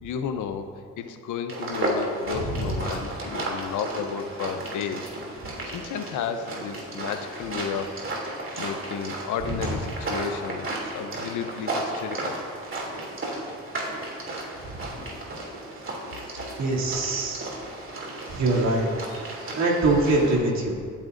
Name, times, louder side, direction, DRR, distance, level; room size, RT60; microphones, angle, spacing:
voice 1, 0.0-5.1 5.6-8.0 8.6-12.4 13.3-13.4, left 7 dB, 80° left, 8 dB, 0.9 m, -33 dB
sound 1, 1.5-20.3, right 2 dB, 45° right, 3.0 m, -34 dB
voice 2, 16.6-17.5 18.3-18.9 19.6-20.8, right 2 dB, 65° right, -3 dB, 2.8 m, -23 dB
23.5 x 8.8 x 2.7 m, 2.1 s
cardioid pair, 90°, 30 cm